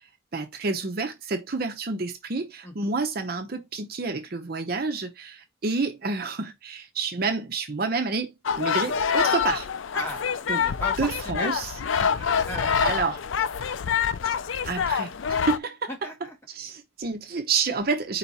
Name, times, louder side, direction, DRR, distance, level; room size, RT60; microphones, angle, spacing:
voice 1, 0.3-8.3 8.6-9.7 10.5-10.6 11.0-11.7 12.8-13.2 14.2-14.4 14.6-15.1 15.4-15.9 16.5-18.2, right 4 dB, 50° right, 0.6 m, -29 dB
sound 1, 8.5-15.6, left 7 dB, 80° left, 0.4 m, -26 dB
voice 2, 10.5-11.6 12.0-12.9 15.9-16.4, equal, 10° left, 1.6 m, -36 dB
4.6 x 2.9 x 4.1 m
head